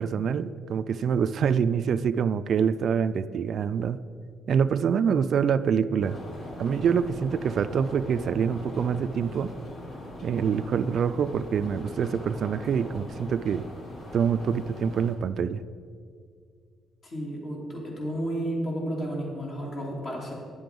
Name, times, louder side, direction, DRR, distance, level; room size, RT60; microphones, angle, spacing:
voice 1, 0.0-4.0 4.5-6.2 6.6-9.5 10.2-13.6 14.1-15.6, right 7 dB, 60° right, 13 dB, 0.3 m, -25 dB
sound 1, 6.0-15.1, left 1 dB, 75° left, 2.7 m, -41 dB
voice 2, 17.0-20.3, right 1 dB, 50° left, -2 dB, 3.0 m, -32 dB
9.8 x 7.7 x 5.3 m, 2.2 s
cardioid pair, 90°, 0 cm